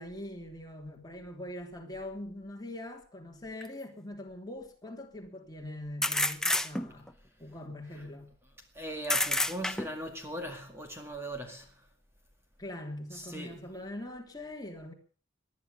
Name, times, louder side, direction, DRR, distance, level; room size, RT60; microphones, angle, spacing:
voice 1, 0.0-7.1 7.4-8.3 12.6-14.9, left 1 dB, 20° left, 3.1 m, -42 dB
sound 1, 3.6-3.7 6.0-7.1 9.0-10.1, left 1 dB, 5° left, 0.8 m, -29 dB
voice 2, 8.7-11.9 13.1-13.6, right 1 dB, 15° right, 2.1 m, -39 dB
19.5 x 11.0 x 6.7 m
head